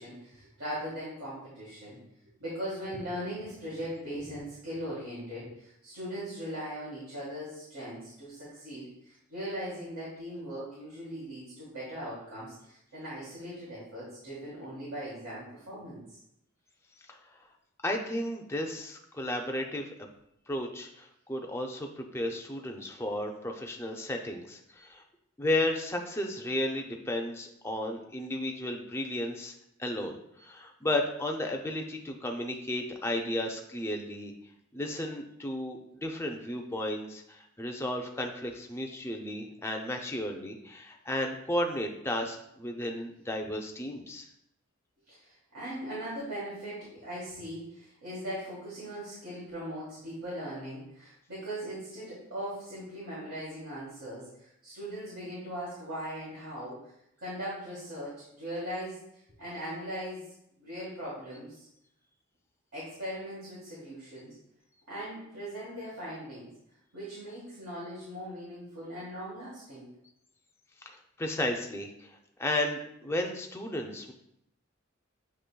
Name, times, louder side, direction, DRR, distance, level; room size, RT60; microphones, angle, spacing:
voice 1, 0.0-2.0 2.4-16.2 45.1-56.9 57.2-59.0 59.4-60.2 60.6-61.6 62.7-64.3 64.9-66.5 66.9-69.9, equal, 85° right, -9 dB, 1.6 m, -39 dB
voice 2, 17.8-19.9 20.5-25.0 25.4-29.5 29.8-34.3 34.7-44.3 70.8-74.1, left 1 dB, 10° left, 3 dB, 0.4 m, -33 dB
7.5 x 3.0 x 2.2 m, 0.77 s
head